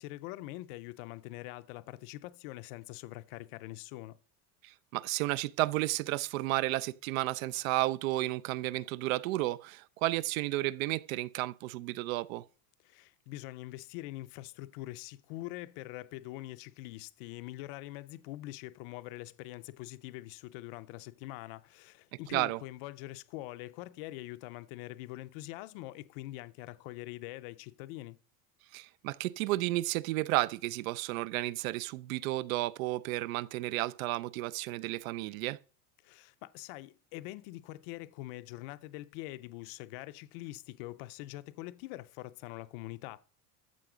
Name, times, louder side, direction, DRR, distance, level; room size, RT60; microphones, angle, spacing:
voice 1, 0.0-4.2 12.8-28.2 36.0-43.2, left 17 dB, 40° left, 0.5 m, -44 dB
voice 2, 4.6-12.4 22.3-22.6 28.7-35.6, right 17 dB, 70° right, 0.6 m, -32 dB
14.0 x 7.6 x 5.0 m
cardioid pair, 180°, 42 cm